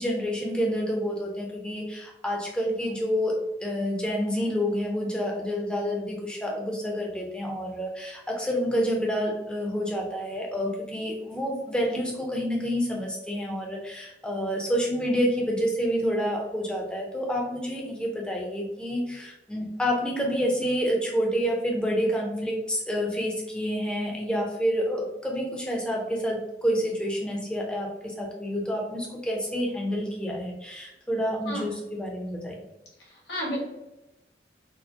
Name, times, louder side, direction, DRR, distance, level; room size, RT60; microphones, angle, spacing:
voice 1, 0.0-32.6, equal, 5° left, -1 dB, 0.5 m, -28 dB
voice 2, 31.4-31.8 33.0-33.6, equal, 70° left, -4 dB, 1.3 m, -33 dB
4.1 x 2.1 x 2.7 m, 0.95 s
head